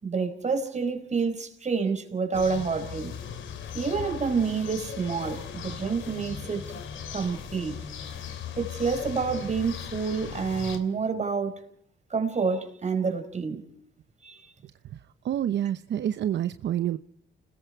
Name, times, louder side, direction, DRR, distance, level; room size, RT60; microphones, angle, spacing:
voice 1, 0.0-3.2 3.7-6.8 7.1-7.8 8.6-11.6 12.1-13.6 14.2-14.5, right 5 dB, 35° right, 7 dB, 5.0 m, -28 dB
sound 1, 2.3-10.8, left 7 dB, 75° left, 3.3 m, -38 dB
voice 2, 15.2-17.0, right 11 dB, 65° right, 12 dB, 0.8 m, -27 dB
29.5 x 20.5 x 4.7 m, 0.65 s
cardioid pair, 90°, 20 cm